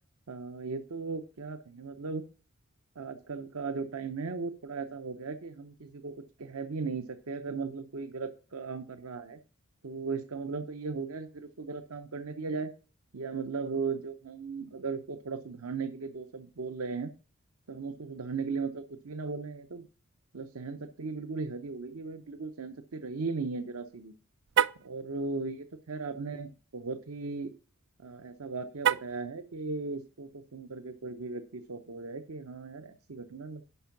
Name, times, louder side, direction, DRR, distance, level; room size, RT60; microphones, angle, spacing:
voice 1, 0.3-2.2 3.0-6.1 6.4-9.4 9.8-12.7 13.1-17.1 17.7-19.9 20.3-24.1 24.8-27.5 28.0-33.6, right 4 dB, 80° right, 8 dB, 0.8 m, -37 dB
Car, 24.5-24.9 28.8-29.3, right 9 dB, 55° right, 0.3 m, -27 dB
11.0 x 4.6 x 5.8 m, 0.36 s
head